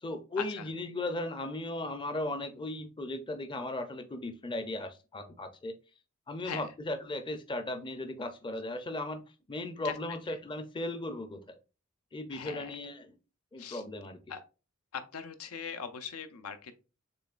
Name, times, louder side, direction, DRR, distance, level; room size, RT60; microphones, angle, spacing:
voice 1, 0.0-5.7 6.3-9.2 9.5-11.6 12.1-13.1 13.5-14.2, left 2 dB, 20° left, 0.5 m, -37 dB
voice 2, 12.3-12.8 13.6-13.8 14.3-14.4 14.9-16.8, left 7 dB, 90° left, 0.6 m, -40 dB
6.8 x 3.1 x 2.4 m
head